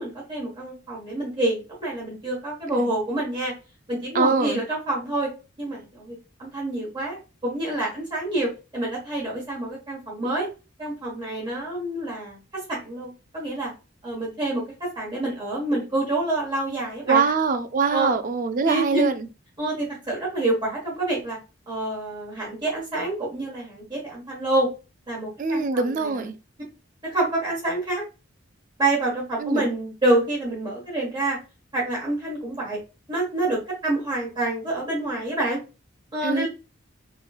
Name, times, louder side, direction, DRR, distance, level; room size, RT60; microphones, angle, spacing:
voice 1, 0.0-3.5 3.9-5.3 5.6-10.5 10.8-13.7 14.0-17.2 17.9-18.1 18.6-19.1 19.6-21.4 21.7-24.7 25.1-26.3 27.1-28.0 28.8-31.4 31.7-32.8 33.1-35.6 36.1-36.5, right 2 dB, 25° right, 1.4 m, -27 dB
voice 2, 4.1-4.6 17.1-19.1 25.4-26.3 29.4-29.6 36.2-36.5, right 4 dB, 40° right, 0.4 m, -23 dB
3.8 x 3.1 x 2.3 m
head